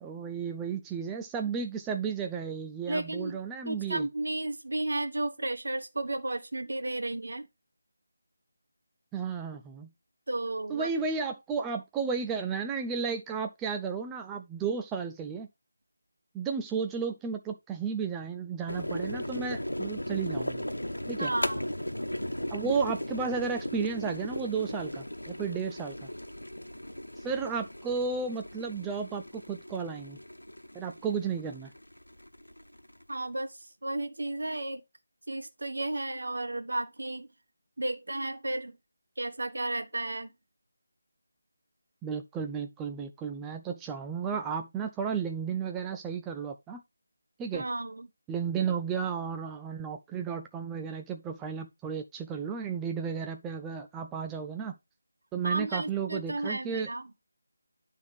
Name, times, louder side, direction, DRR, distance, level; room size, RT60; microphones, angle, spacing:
voice 1, 0.0-4.1 9.1-9.9 10.7-15.5 16.3-20.7 21.1-21.3 22.5-26.1 27.2-30.2 30.7-31.7 42.0-46.8 47.4-47.6 48.3-54.8 55.3-56.9, right 6 dB, 10° right, 0.4 m, -33 dB
voice 2, 2.9-3.4 3.6-7.5 10.3-10.9 21.2-21.7 33.1-34.8 35.3-37.3 37.8-38.7 39.2-40.3 47.5-48.1 55.4-57.1, right 2 dB, 60° right, 1.4 m, -33 dB
sound 1, 18.7-33.2, left 1 dB, 85° left, 1.0 m, -37 dB
10.5 x 3.6 x 4.9 m
figure-of-eight pair, 160°, 0 cm